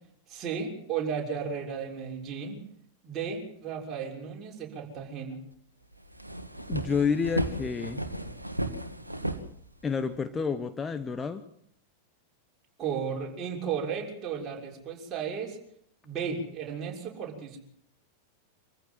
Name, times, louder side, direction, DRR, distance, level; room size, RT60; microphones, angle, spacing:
voice 1, 0.3-2.6 3.0-5.4 12.8-15.6 16.0-17.6, right 6 dB, 30° right, -1 dB, 6.4 m, -34 dB
sound 1, 5.5-5.6 5.9-10.1, right 1 dB, 85° right, 1.6 m, -34 dB
voice 2, 6.7-8.0 9.8-11.5, left 5 dB, 15° left, 10 dB, 1.2 m, -29 dB
25.5 x 15.0 x 7.6 m, 0.67 s
figure-of-eight pair, 90°, 0 cm